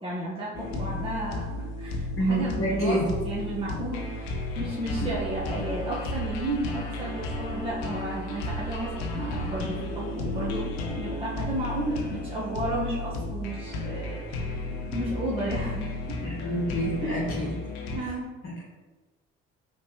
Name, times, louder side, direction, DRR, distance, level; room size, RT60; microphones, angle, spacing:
voice 1, 0.0-14.6 14.9-16.2 17.0-17.2 17.9-18.3, right 1 dB, 20° right, -6 dB, 1.1 m, -33 dB
sound 1, 0.5-18.0, left 2 dB, 85° left, 0.7 m, -33 dB
voice 2, 2.2-3.1 5.0-5.1 16.2-17.6 17.9-18.0 18.4-18.6, right 1 dB, 45° left, -4 dB, 1.4 m, -28 dB
5.1 x 3.5 x 2.9 m, 1.2 s
hypercardioid pair, 60°, 30 cm